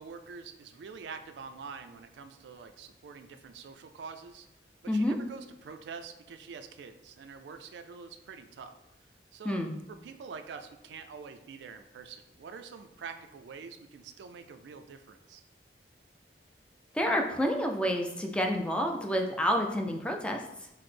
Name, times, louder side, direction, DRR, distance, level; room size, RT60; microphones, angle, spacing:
voice 1, 0.0-4.5 4.9-8.8 9.3-9.6 9.9-15.4, right 5 dB, 80° right, 8 dB, 0.3 m, -46 dB
voice 2, 16.9-20.7, equal, 5° left, 2 dB, 0.3 m, -29 dB
5.8 x 2.0 x 3.2 m, 0.87 s
head